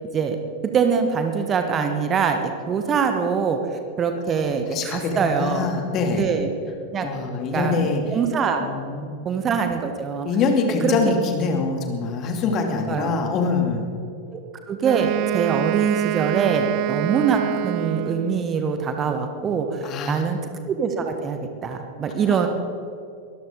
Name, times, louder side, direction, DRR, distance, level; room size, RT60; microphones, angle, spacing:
voice 1, 0.6-3.6 4.0-5.7 6.2-6.5 6.9-7.1 7.5-8.7 9.2-10.3 10.8-10.9 12.9-13.2 14.3-14.4 14.7-20.4 20.7-22.5, right 6 dB, 25° right, 6 dB, 1.3 m, -23 dB
voice 2, 4.7-5.1 5.4-6.3 7.0-8.0 8.6-9.3 10.2-13.9 19.8-20.2 22.3-22.5, left 4 dB, 35° left, 3 dB, 2.6 m, -24 dB
Wind instrument woodwind instrument, 14.8-18.5, right 15 dB, 45° right, 0.3 m, -26 dB
22.5 x 14.0 x 3.8 m, 2.5 s
figure-of-eight pair, 90°, 0 cm